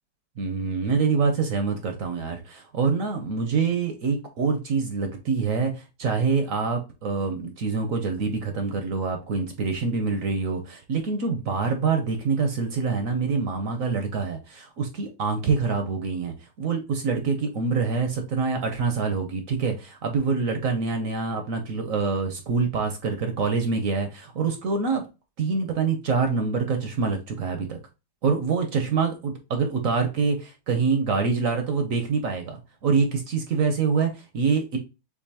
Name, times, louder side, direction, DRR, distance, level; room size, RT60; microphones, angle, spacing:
voice 1, 0.4-25.0 25.4-27.8 28.2-34.8, right 5 dB, 60° right, 5 dB, 1.0 m, -25 dB
6.8 x 2.6 x 2.8 m, 0.28 s
omnidirectional pair, 2.0 m